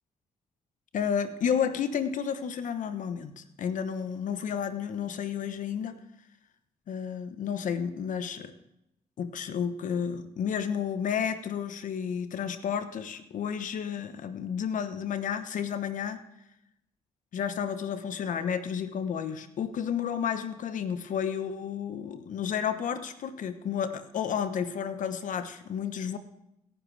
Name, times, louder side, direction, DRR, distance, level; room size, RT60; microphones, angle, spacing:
voice 1, 0.9-6.0 6.9-8.5 9.2-16.2 17.3-26.2, left 7 dB, 65° left, 11 dB, 1.1 m, -31 dB
17.5 x 10.0 x 3.4 m, 0.81 s
supercardioid pair, 60°, 14 cm